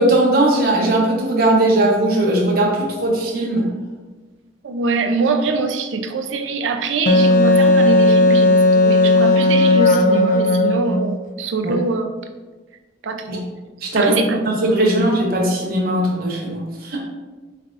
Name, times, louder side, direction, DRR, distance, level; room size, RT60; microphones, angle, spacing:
voice 1, 0.0-3.7 11.6-11.7 13.3-13.4 13.8-17.0, right 1 dB, 55° right, -2 dB, 0.8 m, -18 dB
voice 2, 4.6-12.1 13.0-13.4 14.0-14.4 14.9-15.0, right 4 dB, 90° right, 7 dB, 0.4 m, -23 dB
Wind instrument woodwind instrument, 7.1-11.1, left 2 dB, 45° left, 0.3 m, -14 dB
4.7 x 3.3 x 2.4 m, 1.3 s
head